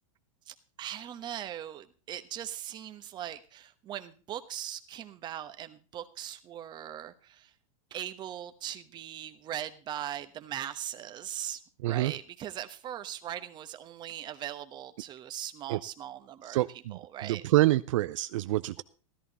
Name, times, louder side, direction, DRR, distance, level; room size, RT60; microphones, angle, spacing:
voice 1, 0.5-7.5 7.9-17.4, right 11 dB, 25° right, 10 dB, 1.1 m, -40 dB
voice 2, 16.5-18.8, right 16 dB, 65° right, 14 dB, 0.5 m, -27 dB
13.5 x 13.5 x 4.1 m, 0.35 s
supercardioid pair, 145°, 17 cm